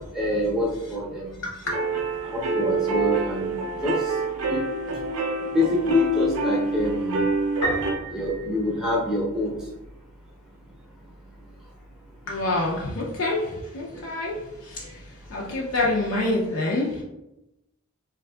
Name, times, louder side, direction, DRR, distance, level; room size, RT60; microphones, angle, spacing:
voice 1, 0.1-1.5 2.2-3.5 3.8-4.1 4.5-4.6 5.5-7.3 8.1-9.5 13.9-14.0, left 2 dB, 5° right, -5 dB, 0.6 m, -25 dB
voice 2, 1.4-1.7 12.3-17.0, left 2 dB, 60° left, -3 dB, 0.4 m, -27 dB
sound 1, 1.7-8.0, right 3 dB, 75° right, 0.4 m, -26 dB
Piano, 7.6-9.4, right 1 dB, 85° left, 0.8 m, -31 dB
3.5 x 2.5 x 2.2 m, 0.93 s
head